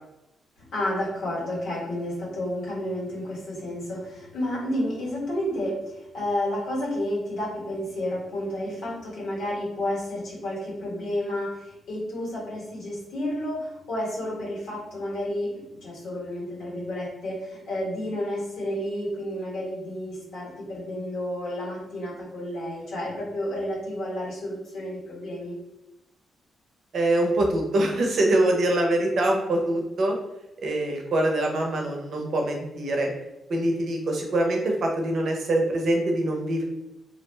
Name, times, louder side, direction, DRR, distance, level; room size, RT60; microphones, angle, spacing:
voice 1, 0.7-25.6, left 1 dB, 80° left, -5 dB, 1.3 m, -31 dB
voice 2, 26.9-30.1 30.6-33.1 33.5-36.6, right 1 dB, 65° right, 1 dB, 0.6 m, -24 dB
2.5 x 2.1 x 3.2 m, 0.92 s
cardioid pair, 75°, 0 cm